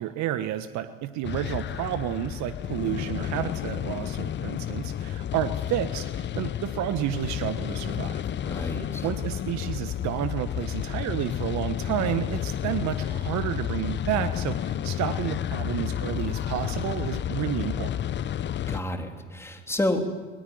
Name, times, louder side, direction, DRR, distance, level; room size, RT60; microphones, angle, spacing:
voice 1, 0.0-8.2 8.7-17.9, right 11 dB, 50° right, 11 dB, 1.3 m, -31 dB
sound 1, 1.2-18.8, left 10 dB, 30° left, 0.8 m, -31 dB
voice 2, 8.4-9.0 18.7-20.0, left 1 dB, 5° left, 4 dB, 3.3 m, -29 dB
21.0 x 21.0 x 9.4 m, 1.3 s
hypercardioid pair, 75°, 36 cm